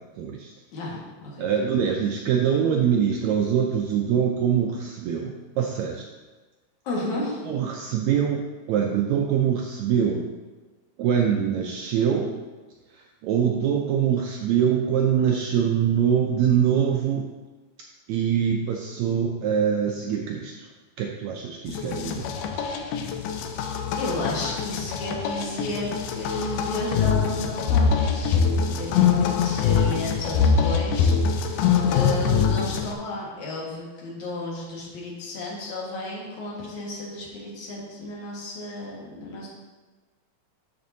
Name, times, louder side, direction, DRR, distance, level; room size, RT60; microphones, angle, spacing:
voice 1, 0.0-0.5 1.4-6.1 7.5-10.3 11.0-12.4 12.9-17.3 18.1-20.7 21.0-22.3, right 8 dB, 85° right, 2 dB, 1.6 m, -24 dB
voice 2, 0.7-1.5 6.8-7.5 24.0-31.4 31.8-39.5, left 2 dB, 65° left, -4 dB, 2.9 m, -33 dB
sound 1, 21.7-32.9, left 6 dB, 90° left, 2.3 m, -23 dB
13.0 x 5.2 x 2.7 m, 1.3 s
omnidirectional pair, 3.8 m